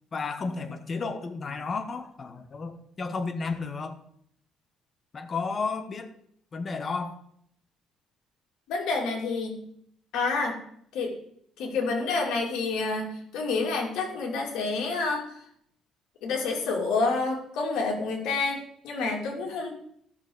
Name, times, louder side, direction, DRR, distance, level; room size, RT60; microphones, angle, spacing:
voice 1, 0.1-4.0 5.1-6.1 6.5-7.2, left 4 dB, 30° left, 7 dB, 1.0 m, -32 dB
voice 2, 8.7-9.6 10.1-10.6 10.9-11.1 11.6-15.4 16.2-19.7, left 3 dB, 80° left, 0 dB, 2.8 m, -28 dB
14.5 x 6.5 x 4.0 m, 0.68 s
cardioid pair, 145°, 0 cm